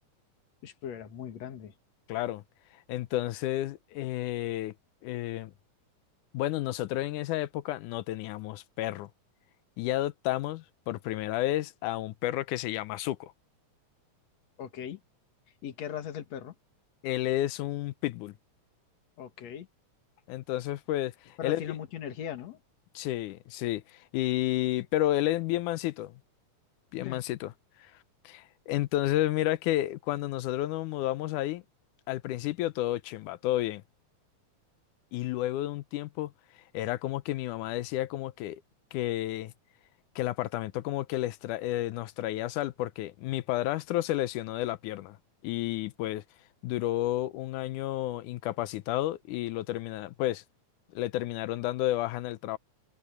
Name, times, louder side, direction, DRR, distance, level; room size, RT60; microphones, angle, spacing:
voice 1, 0.6-1.7 14.6-15.0 15.6-16.5 19.2-19.7 21.4-22.6 27.0-27.2, left 9 dB, 60° left, 2.8 m, -39 dB
voice 2, 2.1-2.4 2.9-4.7 5.0-5.5 6.3-9.1 9.8-13.3 17.0-18.4 20.3-21.6 23.0-26.2 26.9-27.5 27.8-27.9 28.2-31.6 32.1-33.8 35.1-36.3 36.7-38.6 38.9-39.5 40.2-45.2 45.4-46.2 46.6-50.4 50.9-52.6, left 15 dB, 85° left, 2.2 m, -31 dB
omnidirectional pair, 3.5 m